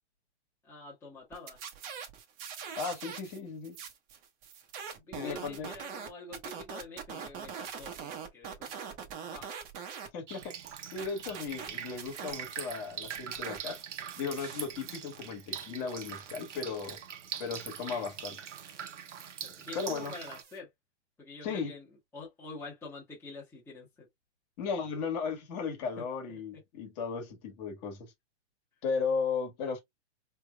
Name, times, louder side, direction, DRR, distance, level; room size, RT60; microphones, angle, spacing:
voice 1, 0.6-1.6 4.9-9.5 19.4-20.7 21.2-21.9 22.1-24.1 26.0-26.1 26.3-26.6, left 3 dB, 5° left, 1.1 m, -47 dB
sound 1, 1.3-3.4 3.6-10.1 10.4-12.7 13.0-20.6, right 7 dB, 25° right, 0.9 m, -44 dB
voice 2, 2.8-3.8 5.1-5.7 10.1-10.6 10.9-13.8 14.2-17.0 17.4-18.4 19.7-20.1 21.4-21.7 24.6-28.1 28.8-29.8, left 5 dB, 35° left, 1.6 m, -35 dB
Drip, 10.3-20.4, right 8 dB, 90° right, 1.0 m, -43 dB
4.5 x 3.3 x 2.2 m
hypercardioid pair, 150°, 35 cm